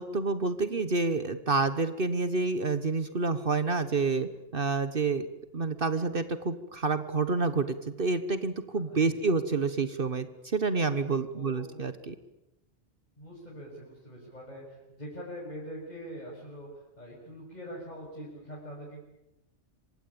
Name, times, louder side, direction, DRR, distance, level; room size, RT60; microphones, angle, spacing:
voice 1, 0.0-5.3 5.5-12.1, right 4 dB, 50° right, 12 dB, 1.5 m, -28 dB
voice 2, 8.9-9.3 11.3-12.0 13.2-19.0, equal, 35° left, -4 dB, 7.2 m, -43 dB
26.5 x 24.5 x 8.8 m, 0.89 s
omnidirectional pair, 1.2 m